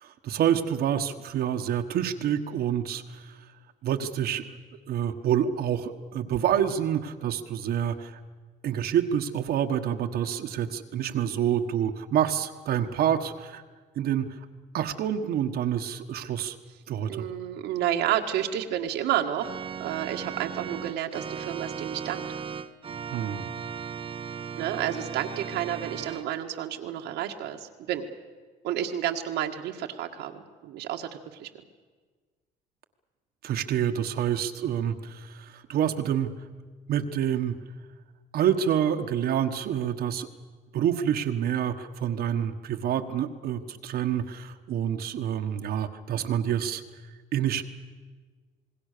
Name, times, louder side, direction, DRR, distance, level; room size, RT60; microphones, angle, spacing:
voice 1, 0.0-3.3 3.8-4.5 4.9-8.2 8.6-13.6 13.9-14.3 14.7-16.6 16.9-17.2 23.1-23.5 33.4-36.3 36.9-37.6 38.3-40.3 40.7-46.8 47.3-47.6, right 9 dB, 65° right, 6 dB, 1.4 m, -27 dB
voice 2, 17.1-22.3 24.6-28.0 28.6-31.5, right 11 dB, 85° right, 3 dB, 1.8 m, -30 dB
Organ, 19.4-26.2, right 7 dB, 35° right, 0.9 m, -37 dB
27.5 x 20.5 x 6.8 m, 1.4 s
cardioid pair, 110°, 17 cm